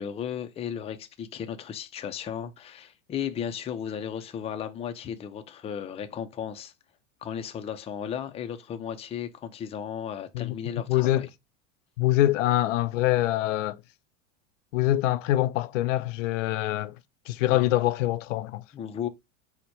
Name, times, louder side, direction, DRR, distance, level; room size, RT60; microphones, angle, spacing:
voice 1, 0.0-6.7 7.2-11.3 18.7-19.1, left 8 dB, 15° left, 0.4 m, -35 dB
voice 2, 10.9-11.3 12.0-13.8 14.7-16.9 17.3-18.6, left 15 dB, 90° left, 0.5 m, -24 dB
4.2 x 2.1 x 4.4 m
supercardioid pair, 120°, 36 cm